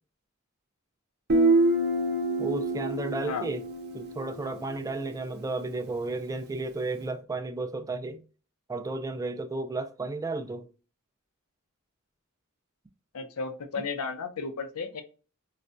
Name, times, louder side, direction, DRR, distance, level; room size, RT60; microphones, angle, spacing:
Guitar, 1.3-4.9, right 2 dB, 50° right, 0.7 m, -26 dB
voice 1, 2.4-3.6 3.9-8.2 8.7-10.7, right 3 dB, 15° right, 0.3 m, -33 dB
voice 2, 13.1-15.0, left 4 dB, 85° left, 0.6 m, -34 dB
4.0 x 2.2 x 2.5 m
head